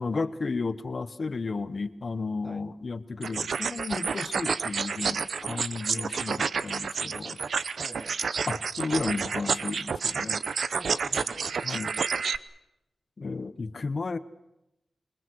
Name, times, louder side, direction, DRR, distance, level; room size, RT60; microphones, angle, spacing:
voice 1, 0.0-7.4 8.5-10.4 11.6-11.9 13.2-14.2, left 4 dB, 45° left, 12 dB, 1.1 m, -33 dB
sound 1, 3.2-12.4, right 5 dB, 75° right, 0.8 m, -30 dB
voice 2, 7.8-8.2 10.7-11.7, right 2 dB, 30° right, 11 dB, 1.3 m, -45 dB
27.5 x 23.5 x 6.4 m, 0.88 s
wide cardioid pair, 120°, 0 cm